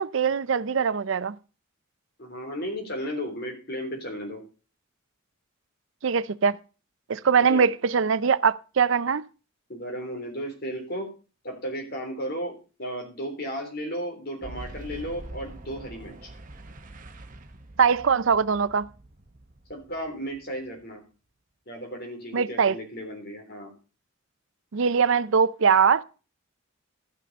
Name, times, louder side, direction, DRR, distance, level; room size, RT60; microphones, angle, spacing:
voice 1, 0.0-1.3 6.0-6.6 7.1-9.2 17.8-18.9 22.3-22.8 24.7-26.0, right 6 dB, 65° right, 0.5 m, -22 dB
voice 2, 2.2-4.4 7.4-7.7 9.7-11.1 11.4-16.3 19.7-21.0 21.7-23.7, equal, 50° left, 3.6 m, -34 dB
Boom, 14.4-21.0, right 1 dB, 40° right, 1.1 m, -44 dB
12.5 x 6.7 x 5.3 m
head